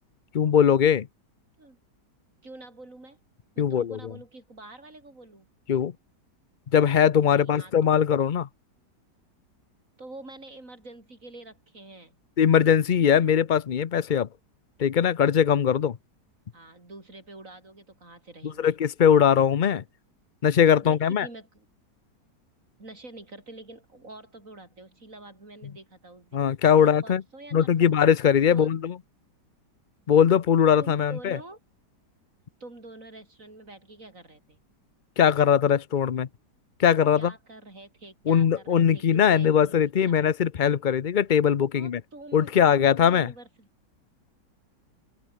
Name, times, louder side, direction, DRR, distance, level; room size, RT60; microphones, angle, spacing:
voice 1, 0.3-1.1 3.6-4.0 5.7-5.9 6.7-8.5 12.4-14.3 14.8-16.0 18.6-19.8 20.4-21.3 26.3-27.2 27.5-28.9 30.1-31.4 35.2-36.3 36.8-37.3 38.3-42.0 42.3-43.3, left 8 dB, 80° left, 0.4 m, -21 dB
voice 2, 2.4-3.2 3.6-5.5 7.2-7.9 10.0-12.2 16.5-18.8 20.8-21.6 22.8-26.4 26.8-27.9 28.5-28.7 30.8-31.6 32.6-34.6 37.1-39.8 40.1-40.2 41.7-43.7, right 2 dB, 45° right, 5.9 m, -46 dB
open air
omnidirectional pair, 1.9 m